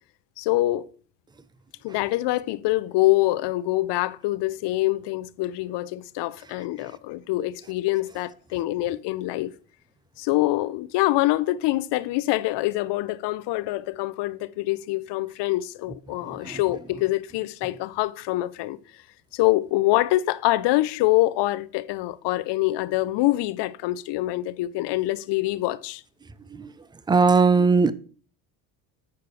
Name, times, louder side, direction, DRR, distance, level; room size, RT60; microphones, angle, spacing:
voice 1, 0.4-0.9 1.8-9.5 10.2-18.8 19.3-26.0, left 17 dB, 60° left, 0.6 m, -25 dB
voice 2, 27.1-27.9, right 4 dB, 10° right, 0.4 m, -19 dB
8.4 x 4.7 x 4.7 m
hypercardioid pair, 75°, 48 cm